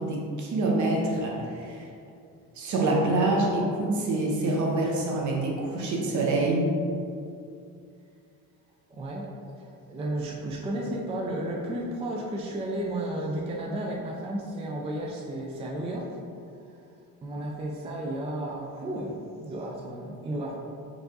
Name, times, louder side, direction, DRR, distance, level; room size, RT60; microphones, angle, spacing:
voice 1, 0.0-1.8 2.6-6.7, right 2 dB, 55° right, -1 dB, 0.9 m, -26 dB
voice 2, 8.9-9.3 9.6-16.2 17.2-20.5, right 1 dB, 20° right, -1 dB, 0.3 m, -33 dB
4.6 x 2.5 x 3.9 m, 2.4 s
cardioid pair, 150°, 35 cm